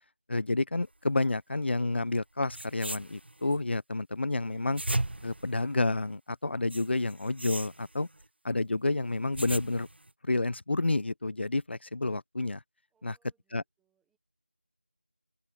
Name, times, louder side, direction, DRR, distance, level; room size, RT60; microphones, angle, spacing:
voice 1, 0.3-4.8 5.2-8.1 8.4-9.9 10.2-12.6 13.0-13.1 13.5-13.6, left 2 dB, 90° left, 0.3 m, -29 dB
sound 1, 2.2-2.3 2.5-3.6 4.5-6.2 6.7-8.3 9.0-10.1, right 1 dB, 75° right, 0.9 m, -37 dB
voice 2, 12.9-14.2, right 7 dB, ahead, 0.5 m, -76 dB
figure-of-eight pair, 175°, 6 cm